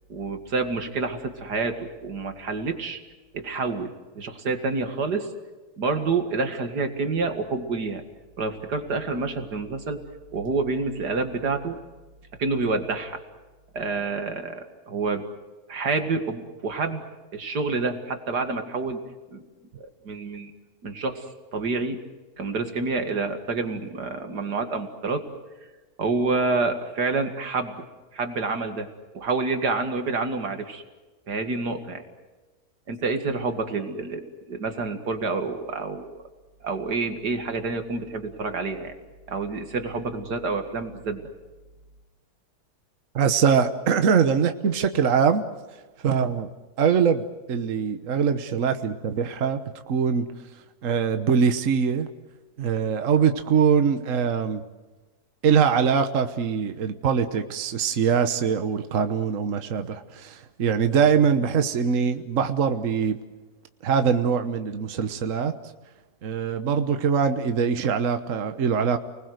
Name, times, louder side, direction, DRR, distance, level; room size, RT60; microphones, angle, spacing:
voice 1, 0.1-3.0 3.3-3.9 4.2-5.3 5.8-8.0 8.4-10.0 10.3-11.8 12.4-13.2 13.7-15.3 15.7-17.0 17.3-19.0 19.3-19.4 19.8-20.5 20.8-21.2 21.5-22.0 22.4-25.2 26.0-27.7 28.1-28.9 29.1-30.8 31.3-32.0 32.9-36.2 36.6-38.9 39.3-41.2, right 3 dB, 85° right, 6 dB, 2.7 m, -28 dB
voice 2, 43.1-45.5 46.0-46.5 46.8-49.6 49.9-50.3 50.8-52.1 52.6-54.6 55.4-63.2 63.8-65.5 66.2-69.0, right 6 dB, 55° right, 8 dB, 1.4 m, -23 dB
30.0 x 20.0 x 8.0 m, 1.2 s
omnidirectional pair, 1.7 m